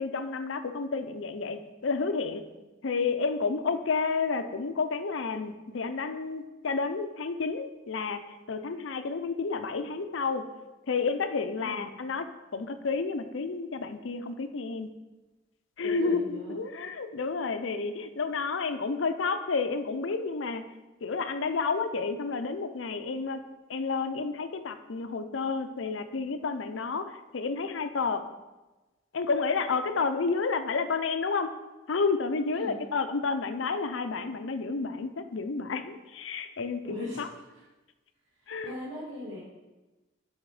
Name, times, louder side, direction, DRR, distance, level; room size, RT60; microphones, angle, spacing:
voice 1, 0.0-2.4 2.8-10.4 10.9-12.3 12.5-14.9 15.8-20.6 21.0-23.4 23.7-28.2 29.1-31.5 31.9-37.3 38.5-38.7, left 4 dB, 80° left, 9 dB, 0.6 m, -30 dB
voice 2, 15.8-16.6 32.5-32.9 36.8-37.2 37.5-37.6 38.4-39.4, left 2 dB, 75° right, -10 dB, 2.5 m, -39 dB
7.0 x 6.3 x 4.9 m, 1.1 s
head